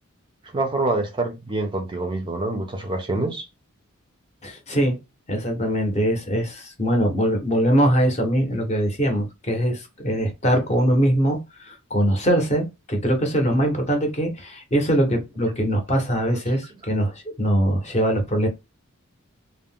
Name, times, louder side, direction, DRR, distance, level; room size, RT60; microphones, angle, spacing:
voice 1, 0.5-3.5, right 2 dB, 25° right, 0.4 m, -26 dB
voice 2, 4.4-5.0 5.3-18.5, equal, 30° left, 0.7 m, -22 dB
2.3 x 2.1 x 3.6 m
head